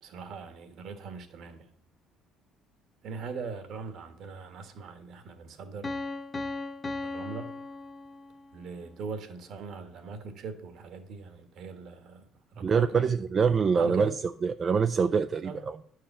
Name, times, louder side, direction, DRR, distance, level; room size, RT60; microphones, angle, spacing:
voice 1, 0.0-1.7 3.0-5.9 7.0-7.6 8.5-12.2 12.5-13.0 13.7-14.1 15.4-15.6, right 5 dB, 55° right, 1.4 m, -40 dB
Piano, 5.8-8.6, left 3 dB, 20° left, 0.6 m, -37 dB
voice 2, 12.6-14.1 14.4-15.8, right 5 dB, 30° right, 0.3 m, -25 dB
10.5 x 4.8 x 7.1 m
cardioid pair, 145°, 0 cm